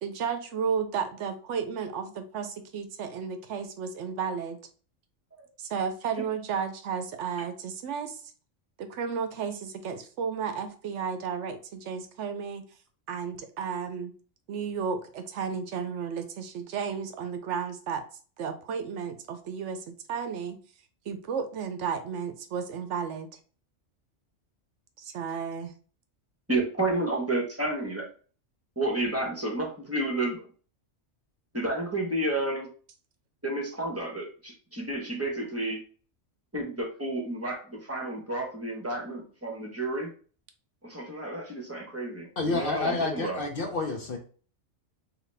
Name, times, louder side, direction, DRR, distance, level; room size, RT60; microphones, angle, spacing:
voice 1, 0.0-4.6 5.6-8.2 8.8-12.7 13.1-14.1 14.5-18.0 18.4-20.6 21.1-23.3 25.0-25.7 42.9-43.0, right 6 dB, 75° right, 8 dB, 0.9 m, -33 dB
voice 2, 26.5-28.1 28.8-30.5 31.5-32.7 33.4-35.8 36.5-40.1 40.8-43.4, right 2 dB, 15° right, 1 dB, 0.9 m, -31 dB
voice 3, 42.4-44.2, left 3 dB, 50° left, 3 dB, 0.8 m, -29 dB
3.9 x 3.0 x 3.3 m, 0.40 s
omnidirectional pair, 1.3 m